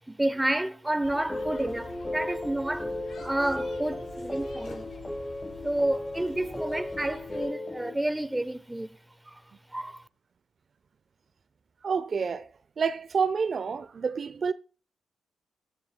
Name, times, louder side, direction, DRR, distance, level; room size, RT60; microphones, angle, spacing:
voice 1, 0.1-4.9 5.6-9.0 9.2-9.4 9.7-10.0, right 1 dB, 10° right, 0.9 m, -30 dB
sound 1, 1.0-7.5, left 2 dB, 75° left, 5.5 m, -47 dB
sound 2, 1.1-8.0, left 1 dB, 15° left, 1.1 m, -36 dB
voice 2, 11.8-12.5 12.8-14.5, right 6 dB, 55° right, 0.5 m, -28 dB
17.5 x 10.5 x 2.2 m
supercardioid pair, 50°, 0 cm